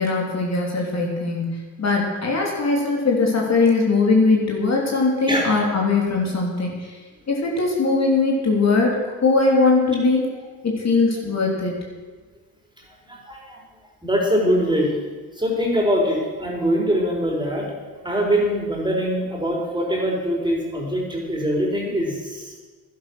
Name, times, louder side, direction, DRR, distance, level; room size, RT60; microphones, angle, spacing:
voice 1, 0.0-7.0 7.3-10.3 10.6-11.8, left 3 dB, 45° left, -1 dB, 3.3 m, -20 dB
voice 2, 13.1-13.6 14.0-14.9 15.4-17.7 18.0-22.6, equal, 10° right, -1 dB, 4.5 m, -23 dB
11.5 x 11.0 x 6.3 m, 1.3 s
supercardioid pair, 70°, 36 cm